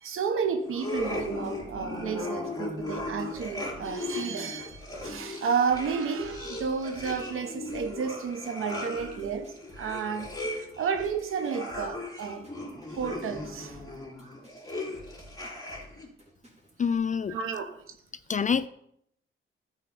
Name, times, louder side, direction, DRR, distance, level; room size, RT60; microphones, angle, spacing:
voice 1, 0.0-10.3 10.8-12.5 12.9-13.8 17.3-17.8, right 6 dB, 85° right, 1.0 m, -31 dB
sound 1, 0.7-16.1, left 2 dB, 15° left, 2.8 m, -38 dB
sound 2, 0.9-16.9, left 1 dB, 30° right, 3.0 m, -52 dB
voice 2, 16.8-17.4 18.3-18.7, left 6 dB, 40° left, 0.4 m, -26 dB
12.5 x 4.7 x 5.4 m
cardioid pair, 95°, 21 cm